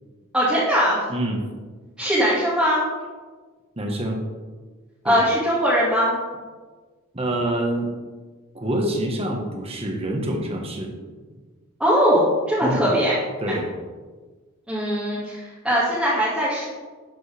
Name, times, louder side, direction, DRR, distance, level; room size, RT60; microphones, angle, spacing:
voice 1, 0.3-1.0 2.0-2.8 5.0-6.2 11.8-13.1 14.7-16.7, equal, 5° right, -10 dB, 2.2 m, -20 dB
voice 2, 1.1-1.4 3.8-4.2 5.0-5.2 7.1-7.9 8.5-10.9 12.6-12.8 13.4-13.7, right 1 dB, 30° right, 1 dB, 1.5 m, -26 dB
11.5 x 7.6 x 3.5 m, 1.4 s
head